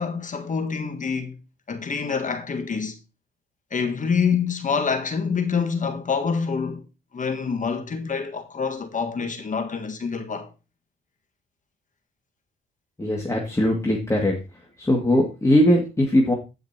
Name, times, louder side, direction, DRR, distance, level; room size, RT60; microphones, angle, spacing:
voice 1, 0.0-1.4 1.7-3.0 3.7-6.8 7.1-10.5, left 5 dB, 40° left, 1.7 m, -26 dB
voice 2, 13.0-14.3 14.8-16.3, left 1 dB, 15° left, 2.2 m, -20 dB
16.5 x 5.9 x 2.9 m
cardioid pair, 90°, 20 cm